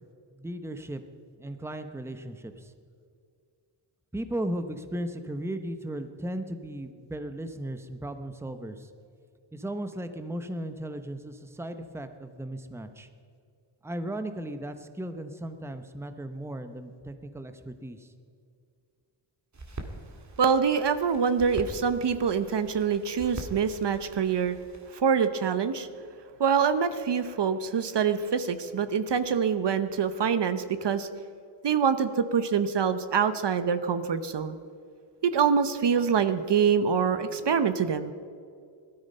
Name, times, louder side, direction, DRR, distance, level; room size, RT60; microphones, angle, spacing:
voice 1, 0.3-1.0 1.4-2.7 4.1-8.9 9.5-13.1 13.8-18.1, right 1 dB, 5° right, 8 dB, 0.8 m, -36 dB
sound 1, 19.5-24.9, right 2 dB, 35° right, 1.9 m, -43 dB
voice 2, 20.4-24.6 24.9-25.9 26.4-31.1 31.6-34.6 35.2-38.1, right 6 dB, 55° right, 11 dB, 0.9 m, -25 dB
18.5 x 13.0 x 5.5 m, 2.3 s
wide cardioid pair, 130°, 50 cm